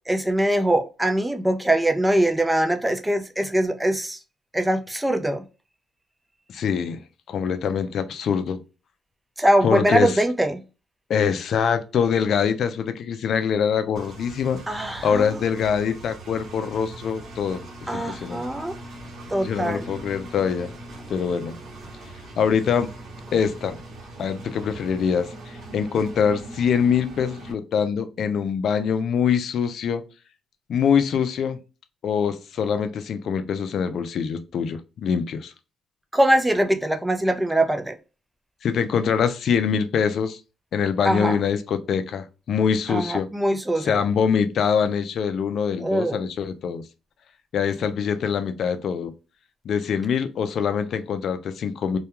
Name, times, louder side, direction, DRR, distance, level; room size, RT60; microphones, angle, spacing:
voice 1, 0.1-4.2 4.5-5.4 9.4-10.6 14.7-15.3 17.9-18.7 19.3-19.9 36.1-37.9 41.0-41.4 42.9-44.0 45.8-46.2, right 1 dB, 10° right, 0.5 m, -22 dB
voice 2, 6.5-7.0 7.3-8.6 9.6-10.2 11.1-17.6 17.9-18.4 19.4-20.7 21.1-21.6 22.4-22.9 23.3-23.8 24.2-25.3 25.7-30.0 30.7-31.6 32.0-35.5 38.6-40.4 40.7-43.3 43.8-46.8 47.5-49.1 49.7-52.0, left 7 dB, 65° left, 0.4 m, -24 dB
Engine, 14.0-27.5, right 1 dB, 60° right, 0.9 m, -41 dB
2.3 x 2.2 x 2.9 m
cardioid pair, 90°, 0 cm